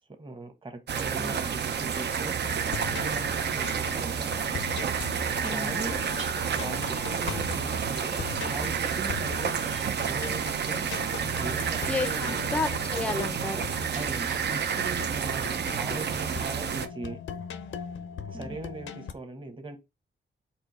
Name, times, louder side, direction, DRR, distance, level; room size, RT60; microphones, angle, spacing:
voice 1, 0.2-2.4 3.0-4.4 5.5-6.0 6.5-8.2 8.4-10.9 11.3-12.4 13.9-17.2 18.3-19.8, right 2 dB, 25° right, 1.3 m, -40 dB
sound 1, 0.9-16.9, right 7 dB, 60° right, 0.6 m, -30 dB
sound 2, 2.4-19.1, left 7 dB, 90° left, 0.6 m, -40 dB
voice 2, 5.4-5.7 11.9-12.1 12.4-13.6 18.3-18.6, left 3 dB, 5° left, 0.5 m, -31 dB
sound 3, 6.1-9.2 9.5-9.9 11.4-11.6 12.1-14.9, right 3 dB, 90° right, 1.7 m, -50 dB
4.4 x 2.7 x 4.2 m
cardioid pair, 75°, 19 cm